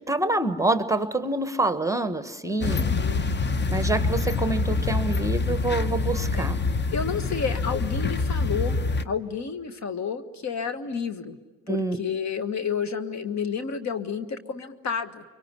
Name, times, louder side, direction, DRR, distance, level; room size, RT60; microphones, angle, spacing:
voice 1, 0.1-2.9 3.7-6.6 11.7-12.0, right 2 dB, 10° right, 10 dB, 1.3 m, -26 dB
voice 2, 2.6-3.3 6.3-6.5 6.9-8.8 9.0-11.4 11.7-15.2, left 6 dB, 45° left, 10 dB, 1.6 m, -30 dB
sound 1, 2.6-9.1, left 3 dB, 30° left, 1.0 m, -26 dB
25.0 x 24.0 x 9.8 m, 1.2 s
hypercardioid pair, 65°, 37 cm